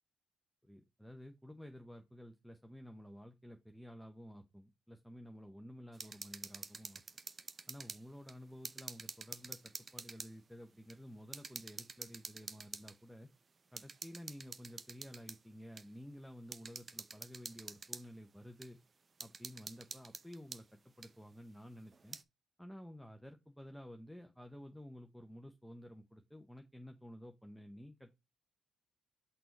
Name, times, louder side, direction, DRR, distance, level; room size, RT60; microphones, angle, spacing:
voice 1, 0.6-7.0 7.7-13.3 13.7-18.8 19.2-22.2 22.6-28.1, equal, ahead, 5 dB, 0.8 m, -52 dB
sound 1, 5.9-8.0 8.3-10.3 10.9-11.0 11.3-13.0 13.8-15.4 15.8-15.9 16.5-18.1 18.6-18.7 19.2-20.6 21.0-21.1 21.9-22.2, right 4 dB, 35° right, 0.6 m, -48 dB
6.0 x 4.5 x 4.1 m, 0.23 s
cardioid pair, 90°, 0 cm